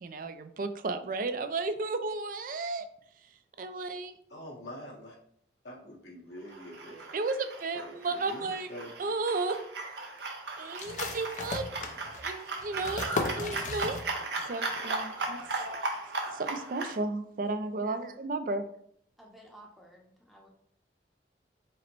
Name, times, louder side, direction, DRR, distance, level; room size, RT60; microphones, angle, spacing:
voice 1, 0.0-2.9 3.6-4.1 7.1-8.7 9.0-9.6 10.6-11.7 12.2-13.1 13.4-14.0 14.5-15.4 16.3-18.7, right 3 dB, 50° right, 9 dB, 0.4 m, -33 dB
voice 2, 4.3-5.1 5.6-7.1 7.7-8.9, equal, 70° left, -4 dB, 1.4 m, -45 dB
sound 1, 6.5-17.0, right 3 dB, 70° right, 0.8 m, -37 dB
sound 2, 10.8-14.4 14.7-14.8 15.2-15.7, left 3 dB, 40° left, 0.5 m, -36 dB
voice 3, 19.2-20.5, right 1 dB, ahead, -1 dB, 0.7 m, -53 dB
5.0 x 2.1 x 4.4 m, 0.68 s
head